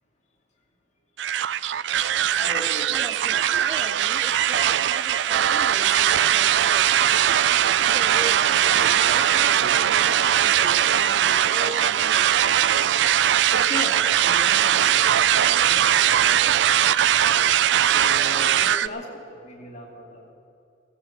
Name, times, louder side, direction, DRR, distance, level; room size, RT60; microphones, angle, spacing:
sound 1, 1.2-18.9, right 10 dB, 75° right, 0.4 m, -20 dB
voice 1, 2.3-2.9 13.4-16.6 17.9-20.3, left 1 dB, 40° left, -1 dB, 2.7 m, -37 dB
voice 2, 2.9-12.5, right 1 dB, 20° right, 7 dB, 0.6 m, -40 dB
15.5 x 15.5 x 6.0 m, 2.4 s
head